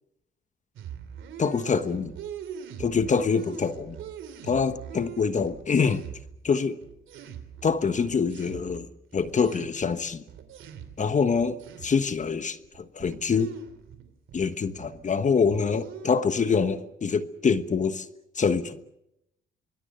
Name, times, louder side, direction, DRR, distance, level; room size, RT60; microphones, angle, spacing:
sound 1, 0.8-6.5 6.8-11.1 11.3-12.1 12.6-14.5 14.8-15.1 15.4-16.8, right 8 dB, 80° right, 2.9 m, -43 dB
voice 1, 1.4-2.1 2.8-4.0 4.4-6.0 6.4-6.8 7.6-10.2 11.0-13.5 14.3-18.1 18.3-18.8, left 5 dB, 40° left, 1.2 m, -25 dB
25.0 x 21.5 x 6.8 m
cardioid pair, 90°, 20 cm